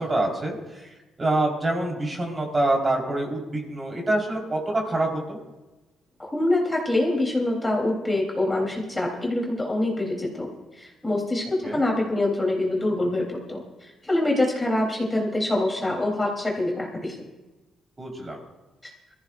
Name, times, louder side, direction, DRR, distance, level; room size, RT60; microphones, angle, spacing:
voice 1, 0.0-5.4 11.6-11.8 18.0-18.4, right 2 dB, 25° right, 0 dB, 4.2 m, -26 dB
voice 2, 6.2-17.1, left 1 dB, 15° left, -1 dB, 3.4 m, -25 dB
22.5 x 15.0 x 2.6 m, 1.1 s
cardioid pair, 90°, 0 cm